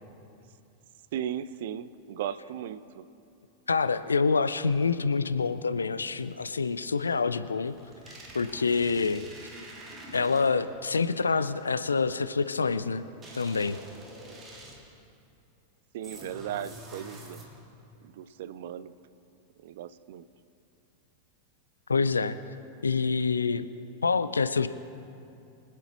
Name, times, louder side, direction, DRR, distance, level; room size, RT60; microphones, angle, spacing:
voice 1, 1.1-3.1 15.9-17.4 18.0-18.9 19.6-20.3, right 10 dB, 55° right, 14 dB, 0.5 m, -36 dB
voice 2, 3.7-7.7 8.3-9.2 10.1-13.0 13.3-13.8 21.9-22.4 22.8-23.7 24.0-24.7, left 4 dB, 75° left, 12 dB, 0.4 m, -26 dB
sound 1, 7.7-10.8 13.2-15.0 16.0-17.8, right 1 dB, 20° right, 2.1 m, -46 dB
24.5 x 8.3 x 3.0 m, 2.6 s
figure-of-eight pair, 90°, 0 cm